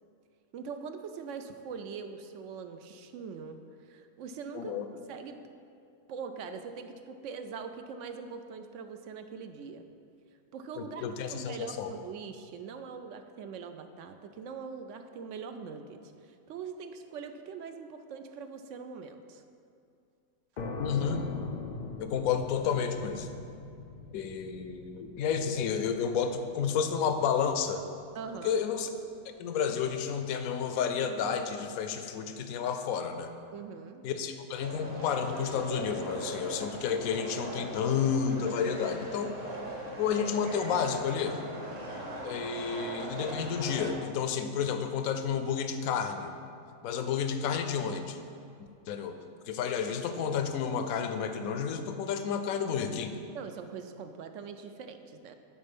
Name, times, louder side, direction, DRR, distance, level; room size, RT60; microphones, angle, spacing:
voice 1, 0.5-5.4 6.1-9.8 10.5-19.4 28.1-28.6 33.5-34.0 42.6-42.7 53.3-55.3, right 5 dB, 70° right, 7 dB, 0.8 m, -42 dB
voice 2, 4.5-4.8 10.8-11.9 20.8-21.2 22.0-23.3 24.1-27.8 28.4-28.9 29.4-33.3 34.0-39.4 40.0-41.4 42.2-46.3 46.8-48.2 48.6-49.2 49.5-53.2, left 7 dB, 80° left, 7 dB, 1.1 m, -31 dB
sound 1, 20.6-27.9, left 3 dB, 60° left, 0.4 m, -42 dB
sound 2, 34.6-43.9, right 1 dB, 50° right, 1.5 m, -40 dB
10.0 x 4.1 x 5.3 m, 2.5 s
omnidirectional pair, 1.5 m